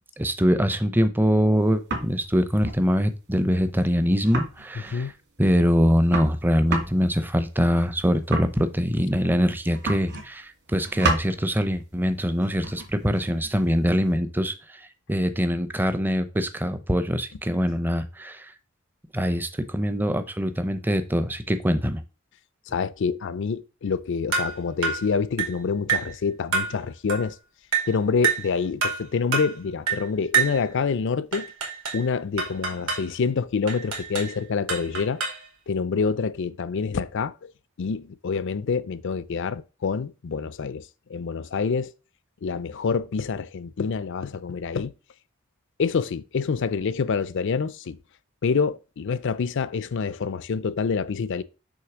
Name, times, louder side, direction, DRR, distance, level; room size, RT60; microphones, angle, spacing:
voice 1, 0.2-5.1 5.4-14.5 15.1-18.4 19.1-22.0, equal, 10° right, 0.6 m, -23 dB
sound 1, 1.5-2.3 2.6-2.9 3.1-3.2 3.5-3.6 3.8-3.9 4.2-5.1 5.5-5.6 5.8-9.4 9.7-10.4 10.7-11.3 12.3-14.1, right 3 dB, 55° right, 2.5 m, -32 dB
voice 2, 22.7-27.3 27.9-31.5 31.9-35.2 35.7-37.5 37.8-41.9 42.4-44.9 45.8-48.0 48.4-51.4, left 5 dB, 60° left, 0.4 m, -27 dB
sound 2, 24.3-24.6 24.8-25.1 25.4-25.6 25.9-26.1 26.5-26.8 27.1-27.3 27.7-27.9 28.2-28.5 28.8-29.0 29.3-29.5 29.9-30.1 30.3-30.6 31.3-32.0 32.4-33.1 33.7-34.3 34.7-35.5, right 5 dB, 75° right, 2.3 m, -26 dB
6.5 x 3.2 x 6.0 m
head